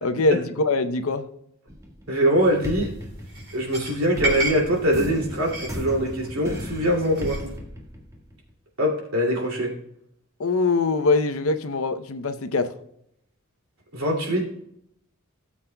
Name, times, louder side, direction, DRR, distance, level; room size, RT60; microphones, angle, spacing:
voice 1, 0.0-1.2 10.4-12.7, left 3 dB, 80° left, 9 dB, 0.7 m, -23 dB
sound 1, 1.7-2.3 2.6-8.5, equal, 15° right, 1.6 m, -35 dB
voice 2, 2.1-2.9 3.5-7.4 8.8-9.7 13.9-14.6, equal, 80° right, -1 dB, 2.6 m, -23 dB
sound 2, 2.3-7.6, right 1 dB, 60° right, 4.3 m, -34 dB
17.0 x 7.4 x 2.2 m, 0.76 s
head